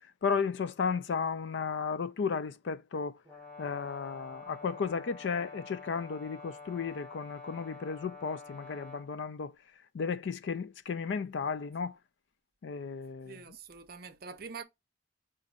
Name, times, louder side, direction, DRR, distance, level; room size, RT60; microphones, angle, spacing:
voice 1, 0.2-3.2 3.6-9.5 9.9-11.9 12.6-13.4, left 5 dB, 70° left, 0.4 m, -34 dB
Brass instrument, 3.2-9.1, left 4 dB, 5° left, 1.0 m, -48 dB
voice 2, 13.3-14.6, right 5 dB, 50° right, 0.6 m, -45 dB
5.1 x 2.6 x 3.9 m
head